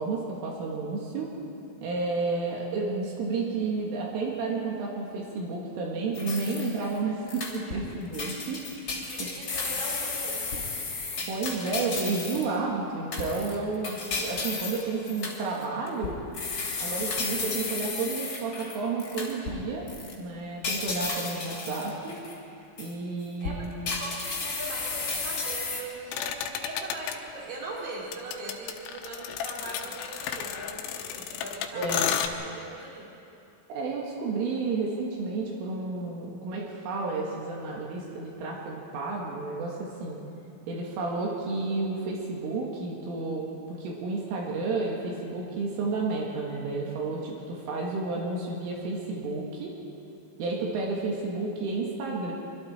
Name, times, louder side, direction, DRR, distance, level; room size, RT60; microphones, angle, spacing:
voice 1, 0.0-1.3 1.8-8.6 9.2-9.3 11.3-16.2 16.8-19.9 20.2-22.2 22.8-23.8 31.7-32.1 33.7-40.2 40.7-49.8 50.4-52.3, right 3 dB, 80° right, -3 dB, 4.6 m, -31 dB
sound 1, 6.1-6.9 7.3-7.9 8.1-12.5 13.1-19.6 19.9-20.1 20.6-22.4 22.8-22.9 23.4-25.8, left 4 dB, 35° left, 3.2 m, -33 dB
voice 2, 9.0-10.4 23.4-24.1 24.4-33.1, right 2 dB, 45° right, -4 dB, 5.1 m, -40 dB
sound 2, 26.1-27.1 28.1-32.3, left 9 dB, 75° left, 3.2 m, -32 dB
25.5 x 24.0 x 4.5 m, 2.7 s
omnidirectional pair, 5.7 m